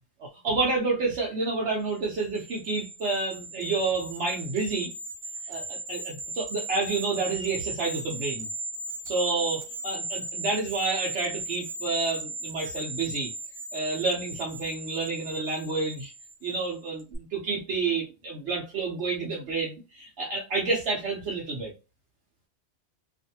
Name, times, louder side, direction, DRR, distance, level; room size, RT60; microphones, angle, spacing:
voice 1, 0.2-4.9 5.5-8.5 9.0-13.3 13.7-16.1 16.4-21.7, right 3 dB, 75° right, -2 dB, 1.0 m, -29 dB
sound 1, 2.0-16.7 17.0-17.2, right 2 dB, 45° right, 0.9 m, -37 dB
2.5 x 2.5 x 2.7 m, 0.28 s
omnidirectional pair, 1.2 m